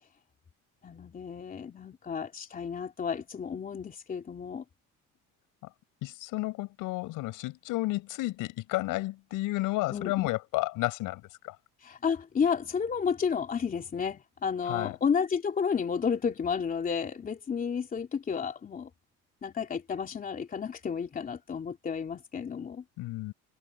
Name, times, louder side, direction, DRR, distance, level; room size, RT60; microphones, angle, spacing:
voice 1, 0.8-4.6 9.9-10.3 11.8-18.9 19.4-22.8, left 6 dB, 25° left, 3.1 m, -32 dB
voice 2, 6.0-11.6 14.7-15.0 23.0-23.3, left 19 dB, 80° left, 6.1 m, -32 dB
cardioid pair, 145°, 32 cm